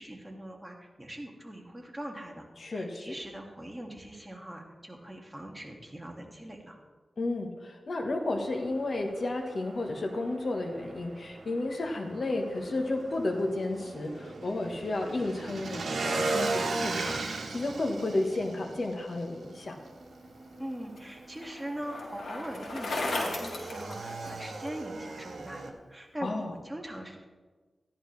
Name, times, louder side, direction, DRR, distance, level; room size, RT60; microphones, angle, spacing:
voice 1, 0.0-6.8 20.6-27.2, right 1 dB, 15° right, 1 dB, 2.0 m, -41 dB
voice 2, 2.6-3.2 7.2-19.7 26.2-26.5, left 2 dB, 60° left, 3 dB, 1.3 m, -32 dB
Motorcycle / Engine, 8.3-25.7, right 3 dB, 85° right, 1.2 m, -38 dB
Bicycle, 20.3-24.7, left 2 dB, 90° left, 2.2 m, -36 dB
13.5 x 10.5 x 3.3 m, 1.3 s
wide cardioid pair, 65°, 0 cm